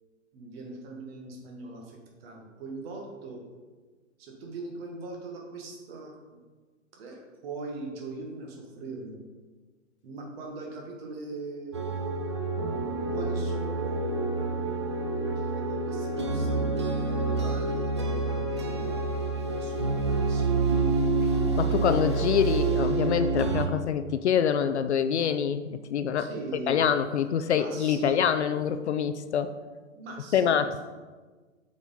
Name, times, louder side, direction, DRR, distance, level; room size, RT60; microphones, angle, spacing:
voice 1, 0.3-3.4 4.2-6.1 6.9-9.2 10.0-11.8 13.1-19.0 19.3-20.8 26.2-26.8 27.6-28.2 29.9-30.5, right 3 dB, 50° right, 0 dB, 1.5 m, -41 dB
sound 1, 11.7-23.7, right 3 dB, 25° right, 0.3 m, -27 dB
voice 2, 21.6-26.3 26.7-29.5 30.3-30.8, left 8 dB, 60° left, 10 dB, 0.5 m, -25 dB
7.1 x 4.3 x 4.1 m, 1.3 s
hypercardioid pair, 130°, 39 cm